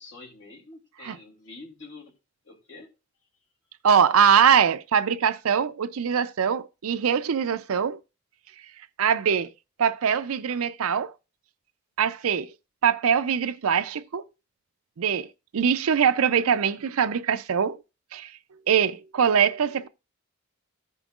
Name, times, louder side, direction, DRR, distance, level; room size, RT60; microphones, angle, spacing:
voice 1, 0.0-2.1 2.4-2.9, left 3 dB, 60° left, 2.9 m, -46 dB
voice 2, 3.8-8.0 9.0-9.5 9.8-11.1 12.0-12.5 12.8-14.2 15.0-15.3 15.5-17.8 18.1-18.3 18.7-19.9, right 7 dB, 85° right, 0.5 m, -22 dB
15.0 x 5.3 x 2.4 m
head